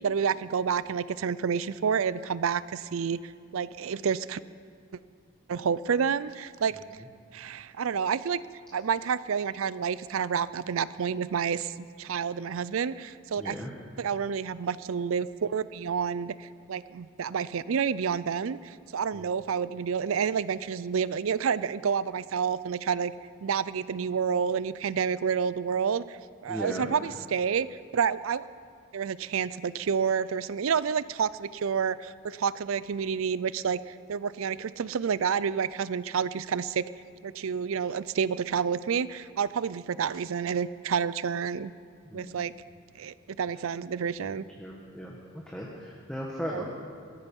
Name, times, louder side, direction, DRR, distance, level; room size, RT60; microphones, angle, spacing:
voice 1, 0.0-3.2 3.5-4.4 5.5-6.8 7.3-8.4 8.7-11.7 12.0-13.6 14.0-23.1 23.4-26.0 26.4-27.7 27.9-28.4 28.9-33.8 34.1-36.8 37.2-41.7 42.1-42.5 43.0-44.4 46.5-46.6, right 6 dB, 75° right, 17 dB, 0.4 m, -29 dB
voice 2, 13.4-13.7 19.1-19.3 26.5-26.9 42.0-42.4 44.6-46.6, equal, 5° left, -3 dB, 1.3 m, -37 dB
18.0 x 13.5 x 5.4 m, 2.2 s
head